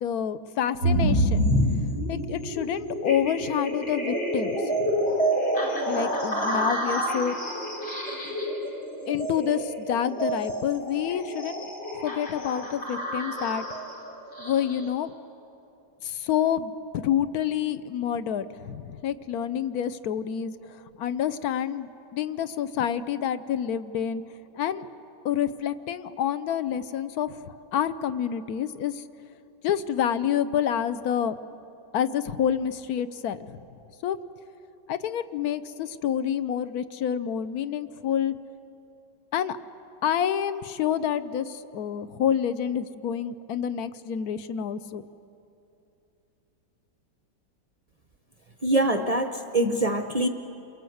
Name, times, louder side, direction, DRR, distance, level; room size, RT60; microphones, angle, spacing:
voice 1, 0.0-1.5 2.1-4.9 5.9-7.3 9.1-11.7 12.0-13.6 14.4-15.1 16.0-24.2 24.6-24.9 25.2-29.0 29.6-31.3 31.9-33.6 34.0-34.2 34.9-38.3 39.3-39.6 40.0-45.0, left 9 dB, 60° left, 13 dB, 1.1 m, -28 dB
sound 1, 0.8-14.9, equal, 80° left, 5.0 m, -28 dB
voice 2, 48.6-50.3, right 1 dB, 60° right, 6 dB, 0.4 m, -24 dB
28.5 x 22.5 x 7.9 m, 2.8 s
omnidirectional pair, 2.0 m